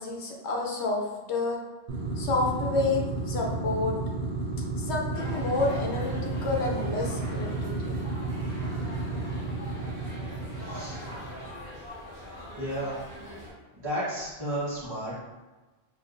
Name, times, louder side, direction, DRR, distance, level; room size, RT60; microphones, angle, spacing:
voice 1, 0.0-1.6 2.2-4.0 4.8-8.0, left 3 dB, 90° left, 0 dB, 1.0 m, -29 dB
sound 1, 1.9-11.7, right 3 dB, 75° right, 0.9 m, -32 dB
sound 2, 5.1-13.5, left 1 dB, 20° left, 1.3 m, -43 dB
voice 2, 10.6-11.0 12.5-13.0 13.8-15.2, right 1 dB, 25° right, -10 dB, 1.2 m, -32 dB
4.5 x 2.8 x 2.5 m, 1.2 s
omnidirectional pair, 1.1 m